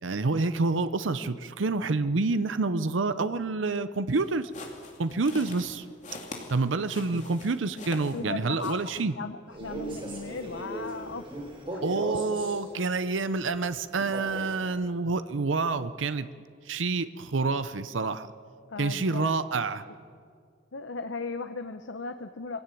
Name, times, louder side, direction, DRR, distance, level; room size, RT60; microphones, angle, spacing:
voice 1, 0.0-4.5 5.0-5.9 6.5-9.1 11.8-16.3 16.7-18.3 18.8-19.8, right 3 dB, 85° right, 12 dB, 0.7 m, -28 dB
sound 1, 4.1-8.3 8.6-9.0, left 3 dB, 40° left, 3.0 m, -44 dB
voice 2, 8.1-8.8 9.2-11.3 11.7-11.8 18.7-19.3 20.7-22.6, left 4 dB, 85° left, 8 dB, 0.9 m, -36 dB
Male speech man speaking, 9.5-12.6 14.0-14.6, right 1 dB, 30° right, 4.3 m, -37 dB
23.0 x 17.0 x 9.2 m, 2.2 s
head